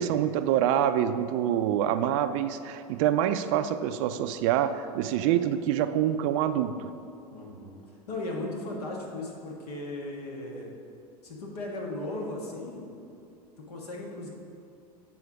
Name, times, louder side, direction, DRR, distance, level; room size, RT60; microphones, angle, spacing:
voice 1, 0.0-6.9, right 10 dB, 55° right, 10 dB, 0.4 m, -26 dB
voice 2, 7.3-7.8 8.1-10.7 11.2-12.8 13.6-14.3, left 2 dB, 75° left, -1 dB, 1.5 m, -36 dB
8.1 x 4.4 x 4.9 m, 2.5 s
hypercardioid pair, 85°, 20 cm